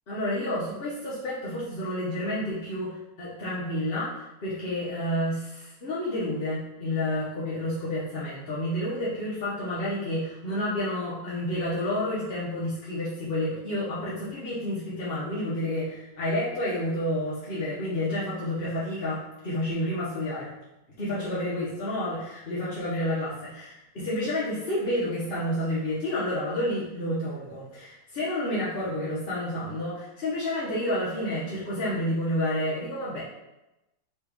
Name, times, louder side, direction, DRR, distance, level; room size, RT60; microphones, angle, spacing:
voice 1, 0.1-20.5 21.0-33.2, left 1 dB, 40° left, -9 dB, 1.0 m, -30 dB
4.6 x 3.1 x 3.5 m, 0.96 s
omnidirectional pair, 2.0 m